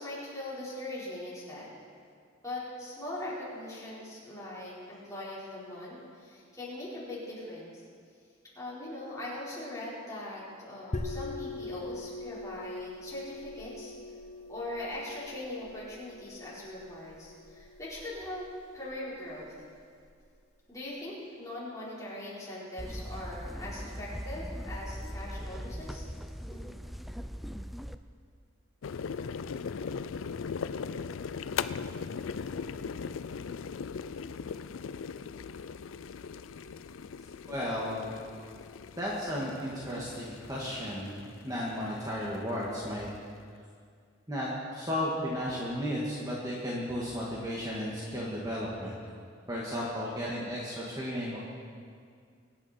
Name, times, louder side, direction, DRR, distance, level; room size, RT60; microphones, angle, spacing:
voice 1, 0.0-1.7 2.4-7.8 8.5-13.9 14.5-18.5 18.7-19.5 20.7-26.1 26.5-26.6, left 1 dB, 15° left, -8 dB, 4.6 m, -41 dB
sound 1, 10.9-20.3, left 2 dB, 35° left, 1.0 m, -43 dB
sound 2, 22.8-27.9, equal, ahead, 0.4 m, -40 dB
sound 3, 28.8-43.3, left 6 dB, 80° left, 0.4 m, -39 dB
voice 2, 37.5-38.1 39.0-41.2 41.4-43.1 44.3-48.9 49.5-51.4, equal, 20° right, -5 dB, 1.9 m, -34 dB
23.5 x 9.8 x 4.4 m, 2.2 s
head